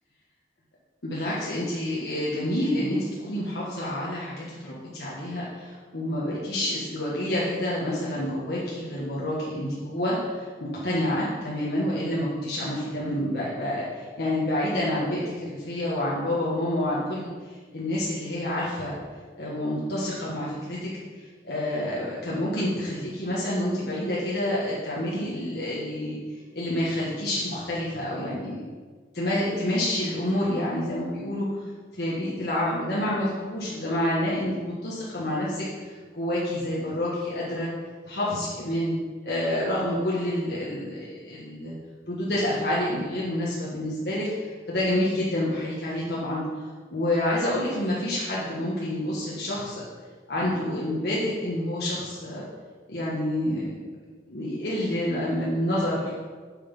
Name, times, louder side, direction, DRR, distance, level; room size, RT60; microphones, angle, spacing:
voice 1, 1.0-18.9 19.4-20.9 21.4-26.2 26.5-28.7 29.1-31.5 31.9-37.7 38.1-38.9 39.2-41.7 42.1-46.4 46.9-49.8 50.3-52.4 52.9-53.7 54.3-56.1, left 1 dB, 65° left, -7 dB, 1.6 m, -28 dB
8.0 x 6.2 x 5.5 m, 1.5 s
head